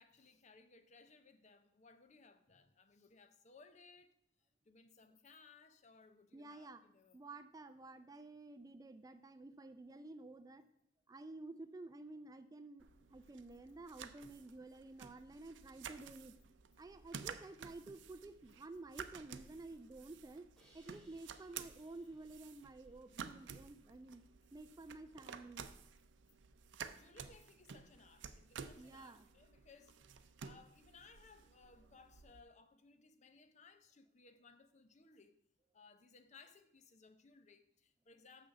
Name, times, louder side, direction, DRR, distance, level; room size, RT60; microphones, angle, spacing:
voice 1, 0.0-4.2 4.6-7.2 26.8-35.4 35.7-38.5, left 4 dB, 40° left, 0.7 m, -63 dB
voice 2, 6.3-6.8 7.1-10.7 11.1-16.4 16.8-20.5 20.7-24.2 24.5-25.7 28.8-29.3 38.2-38.3, right 2 dB, 20° right, 0.3 m, -52 dB
sound 1, 12.8-32.4, right 6 dB, 80° right, 0.5 m, -53 dB
Crash cymbal, 20.6-23.6, right 1 dB, 5° left, 2.5 m, -72 dB
6.7 x 6.4 x 5.8 m
head